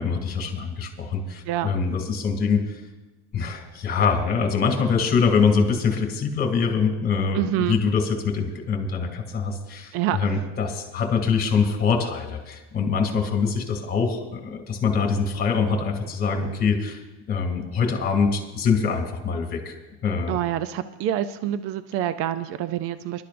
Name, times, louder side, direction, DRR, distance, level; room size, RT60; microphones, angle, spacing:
voice 1, 0.0-2.8 3.3-17.0 17.3-19.8 20.0-20.4, left 5 dB, 25° left, 5 dB, 2.5 m, -24 dB
voice 2, 7.3-7.8 9.9-10.4 20.3-23.3, right 11 dB, 40° right, 12 dB, 0.5 m, -27 dB
25.0 x 12.0 x 2.6 m, 1.1 s
supercardioid pair, 140°, 37 cm